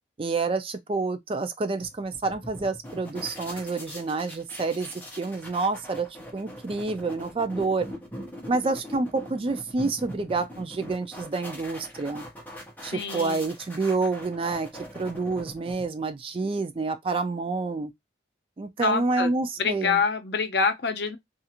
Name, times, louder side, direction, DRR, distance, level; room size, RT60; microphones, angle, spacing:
voice 1, 0.2-4.9 5.2-7.9 8.5-12.2 12.8-17.9 18.6-20.0, right 3 dB, 30° right, 0.3 m, -28 dB
sound 1, 1.8-16.1, equal, 10° left, 0.7 m, -42 dB
voice 2, 12.9-13.5 18.8-19.3 19.6-21.2, left 5 dB, 60° left, 0.6 m, -26 dB
2.4 x 2.4 x 2.8 m
head